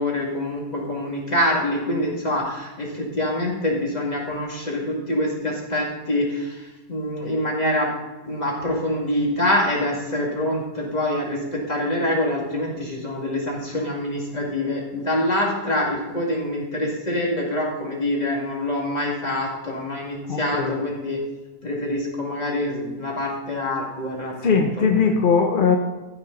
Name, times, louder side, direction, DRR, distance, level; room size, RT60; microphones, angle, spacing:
voice 1, 0.0-7.9 8.2-21.2 21.6-25.0, left 1 dB, 25° left, -2 dB, 2.4 m, -25 dB
voice 2, 20.3-20.8 24.4-25.8, left 5 dB, 45° left, 3 dB, 0.7 m, -20 dB
14.0 x 6.2 x 4.0 m, 1.2 s
omnidirectional pair, 1.7 m